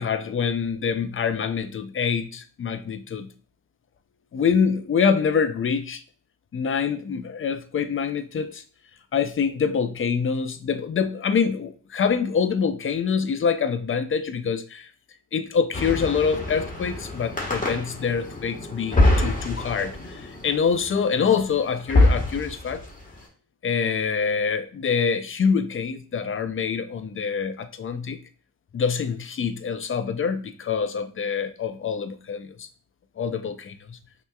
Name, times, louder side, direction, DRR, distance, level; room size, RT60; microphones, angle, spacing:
voice 1, 0.0-3.3 4.3-6.0 6.5-8.6 9.1-14.9 15.3-22.8 23.6-28.2 28.7-32.7 33.2-34.0, left 6 dB, 40° left, 0.4 m, -25 dB
sound 1, 15.7-23.1, left 2 dB, 25° left, 1.4 m, -25 dB
5.4 x 3.0 x 2.3 m
wide cardioid pair, 90°, 33 cm